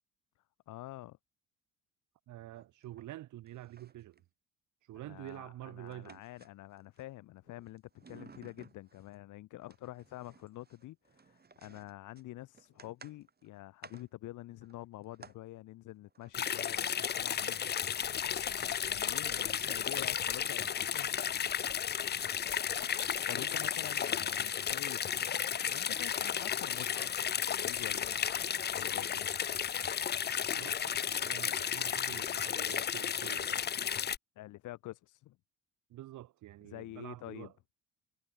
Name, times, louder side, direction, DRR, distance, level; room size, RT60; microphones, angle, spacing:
voice 1, 0.7-1.2 5.0-17.6 18.3-21.9 23.3-25.1 25.7-28.4 28.7-29.3 34.4-35.4 36.6-37.5, left 16 dB, 85° left, 1.1 m, -47 dB
voice 2, 2.3-4.2 4.8-6.2 23.3-23.7 24.4-24.5 30.5-33.7 35.9-37.5, right 14 dB, 75° right, 1.0 m, -48 dB
sound 1, 2.5-3.2 3.5-4.2 5.3-7.0 7.4-9.2 9.6-15.4 16.1-16.4 17.9-18.0 18.2-18.3, right 5 dB, 30° right, 3.2 m, -58 dB
sound 2, 16.3-34.2, left 8 dB, 35° left, 0.5 m, -33 dB
cardioid pair, 90°, 30 cm